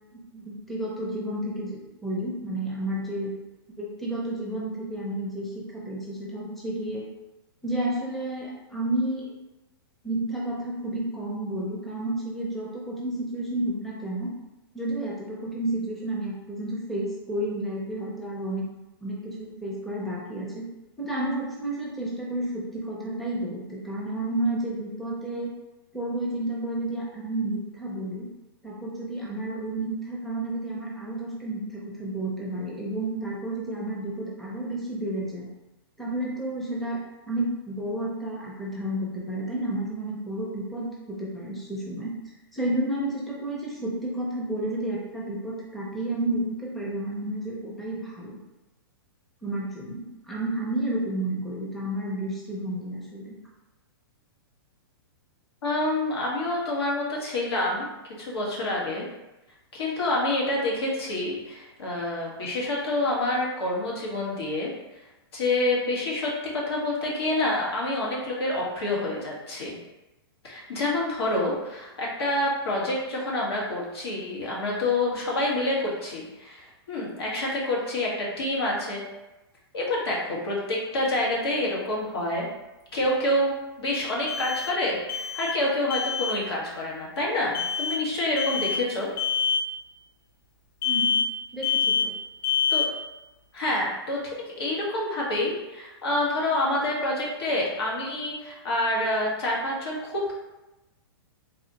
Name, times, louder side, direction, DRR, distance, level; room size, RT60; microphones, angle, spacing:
voice 1, 0.3-3.3 3.8-7.0 7.6-9.3 10.0-14.3 14.7-18.7 19.0-20.6 21.0-25.5 25.9-28.3 28.6-35.5 36.0-37.0 37.3-42.2 42.5-48.3 49.4-53.3 90.8-91.2 91.5-92.1, right 1 dB, ahead, -5 dB, 0.6 m, -31 dB
voice 2, 55.6-57.9 58.2-59.0 59.7-64.7 65.3-69.7 70.4-79.0 79.7-82.5 82.9-83.5 83.8-89.1 92.7-92.8 93.5-94.2 94.6-100.3, left 1 dB, 80° left, -3 dB, 1.4 m, -27 dB
sound 1, 81.0-81.1 84.3-84.8 85.1-85.7 85.9-86.4 87.5-88.0 88.4-88.9 89.2-89.7 90.8-91.4 91.6-92.2 92.4-93.0, left 6 dB, 55° left, 0.6 m, -26 dB
4.0 x 2.8 x 2.8 m, 1.0 s
hypercardioid pair, 150°, 13 cm